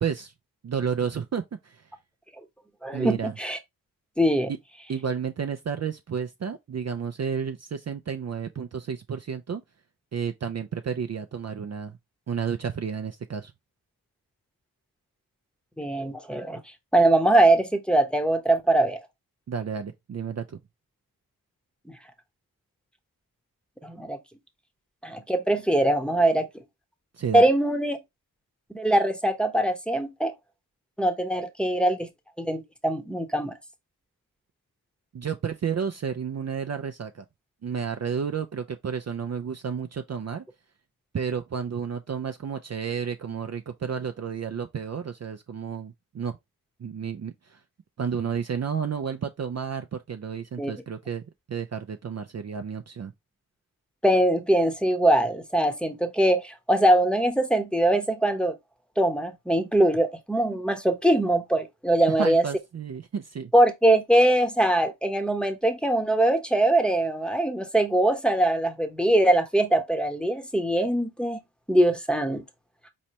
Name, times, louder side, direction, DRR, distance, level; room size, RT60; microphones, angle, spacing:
voice 1, 0.0-0.3 0.6-1.9 2.9-3.4 4.9-9.6 10.1-11.9 12.3-13.5 19.5-20.6 27.2-27.4 35.1-37.2 37.6-40.4 41.1-46.4 46.8-47.6 48.0-51.2 51.5-53.1 62.1-63.5, right 7 dB, 45° right, 0.5 m, -31 dB
voice 2, 2.8-3.6 4.2-4.5 15.8-16.6 16.9-19.0 23.8-24.2 25.0-26.5 27.3-28.0 28.7-30.3 31.0-32.1 32.4-33.5 50.6-50.7 54.0-58.6 59.0-62.4 63.5-71.4 71.7-72.4, right 1 dB, 5° left, 0.9 m, -22 dB
4.2 x 3.1 x 2.8 m
cardioid pair, 45°, 38 cm